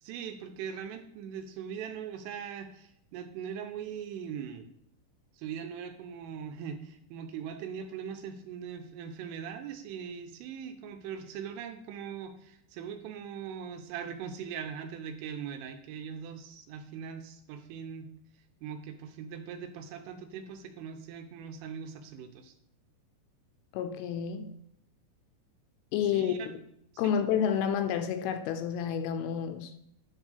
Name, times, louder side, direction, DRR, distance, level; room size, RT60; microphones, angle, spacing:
voice 1, 0.0-4.7 5.3-18.1 18.6-22.5 26.0-26.5 26.9-27.1, right 7 dB, 85° right, 3.3 m, -41 dB
voice 2, 23.7-24.5 25.9-26.6 27.0-29.7, left 8 dB, 80° left, 3.1 m, -30 dB
10.5 x 3.6 x 6.6 m
omnidirectional pair, 5.8 m